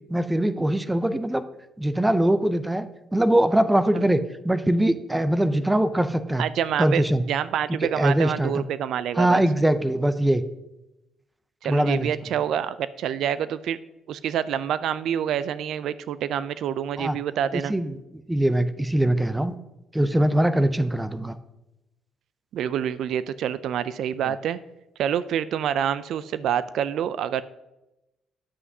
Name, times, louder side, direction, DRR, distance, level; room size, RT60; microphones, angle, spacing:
voice 1, 0.1-1.5 1.8-6.4 6.8-7.2 7.8-8.6 9.2-10.4 11.6-12.1 17.0-17.2 17.5-18.0 18.3-19.5 19.9-21.4 24.2-24.3, right 1 dB, 10° right, 12 dB, 0.5 m, -22 dB
voice 2, 6.4-9.4 11.6-13.8 14.1-17.7 22.5-24.6 25.0-27.4, right 9 dB, 75° right, 15 dB, 0.3 m, -27 dB
9.8 x 7.9 x 2.8 m, 0.94 s
cardioid pair, 90°, 0 cm